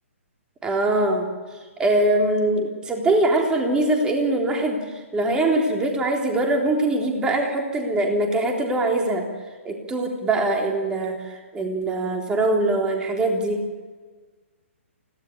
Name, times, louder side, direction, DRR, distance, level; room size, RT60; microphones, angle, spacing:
voice 1, 0.6-1.3 1.8-4.8 5.1-9.2 9.6-13.6, right 2 dB, 10° right, 1 dB, 3.6 m, -22 dB
25.0 x 17.5 x 7.2 m, 1.4 s
figure-of-eight pair, 130°, 7 cm